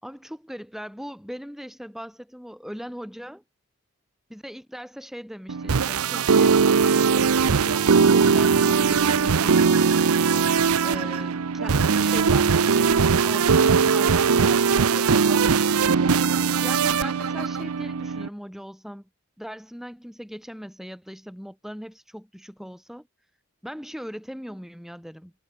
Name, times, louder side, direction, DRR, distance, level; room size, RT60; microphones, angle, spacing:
voice 1, 0.0-3.4 4.3-6.6 7.1-9.6 10.8-16.0 16.6-19.0 19.4-23.1 23.6-25.3, equal, ahead, 4.5 m, -39 dB
sound 1, 5.5-18.3, right 5 dB, 85° right, 0.6 m, -20 dB
head